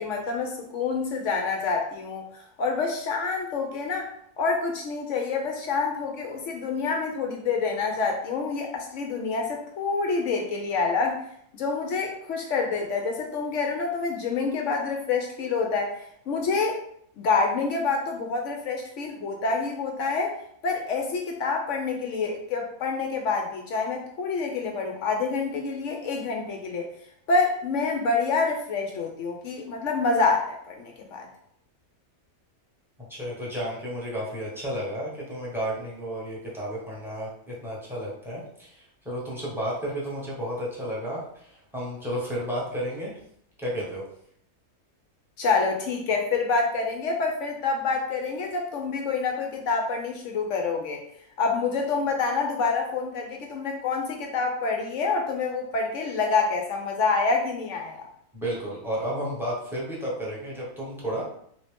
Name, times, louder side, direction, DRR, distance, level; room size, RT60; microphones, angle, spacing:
voice 1, 0.0-4.1 4.4-11.2 11.5-16.0 16.3-16.8 17.2-20.3 20.6-26.9 27.3-31.3 45.4-51.0 51.4-58.1, left 4 dB, 65° left, 2 dB, 0.8 m, -27 dB
voice 2, 33.1-43.2 43.6-44.0 58.3-61.3, equal, ahead, -6 dB, 0.9 m, -32 dB
3.4 x 2.7 x 3.3 m, 0.68 s
omnidirectional pair, 1.6 m